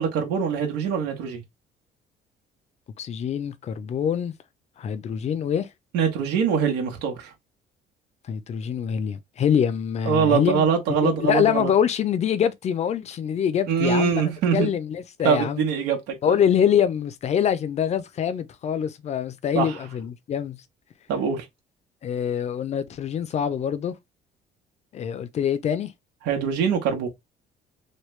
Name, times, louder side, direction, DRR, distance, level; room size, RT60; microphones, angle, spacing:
voice 1, 0.0-1.4 5.9-7.3 10.0-11.7 13.7-14.7 15.2-16.4 19.5-19.8 21.1-21.4 26.2-27.1, right 6 dB, 90° right, 1.0 m, -23 dB
voice 2, 3.0-4.3 4.8-5.7 8.3-10.7 11.0-14.2 14.5-15.6 16.2-20.6 22.0-23.9 24.9-25.9, left 8 dB, 40° left, 0.5 m, -24 dB
3.2 x 2.2 x 3.1 m
cardioid pair, 110°, 17 cm